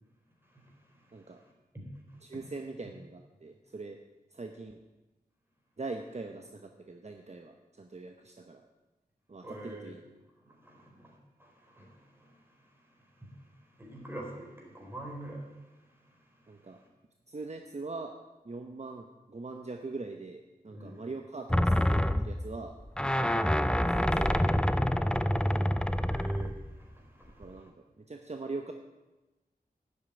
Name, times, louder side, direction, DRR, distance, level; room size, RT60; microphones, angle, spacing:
voice 1, 0.4-2.4 9.4-9.9 10.4-16.9 20.7-21.1 26.0-27.7, right 1 dB, 15° right, -1 dB, 4.1 m, -47 dB
voice 2, 2.2-4.0 4.3-4.8 5.8-8.6 9.3-10.0 10.5-10.6 16.5-16.8 17.3-18.1 18.4-22.8 23.2-23.6 24.0-24.6 25.4-25.7 27.3-28.7, right 3 dB, 45° right, 4 dB, 1.0 m, -42 dB
sound 1, 21.5-26.8 27.4-27.5, equal, 5° left, 0.6 m, -27 dB
11.5 x 8.3 x 8.8 m, 1.1 s
wide cardioid pair, 80°, 16 cm